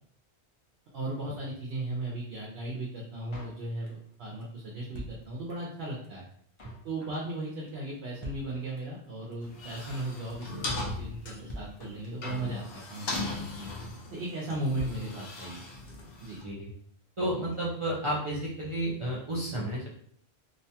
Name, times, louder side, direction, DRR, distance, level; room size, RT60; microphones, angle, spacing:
voice 1, 0.9-6.3 6.8-13.7 14.1-15.6 16.2-16.4, right 1 dB, 70° right, -3 dB, 0.8 m, -36 dB
Drum kit, 3.3-4.1 4.4-4.5 4.7-5.8 6.0-6.1 6.3-6.9 7.1-7.4 7.7-7.8 7.9-8.0 8.2-9.0 9.3-9.4 9.6-10.1 10.4-10.7 10.9-11.0 11.2-11.3 11.5-12.3 12.6-12.7 12.9-13.4 13.7-14.0 14.2-14.3 14.5-14.6 14.8-15.6 15.9-16.2, equal, 40° left, 0.5 m, -45 dB
sound 1, 9.4-16.4, left 2 dB, 65° left, 0.9 m, -38 dB
voice 2, 17.2-19.9, right 1 dB, 45° right, -5 dB, 0.4 m, -31 dB
2.7 x 2.2 x 2.7 m, 0.62 s
omnidirectional pair, 1.1 m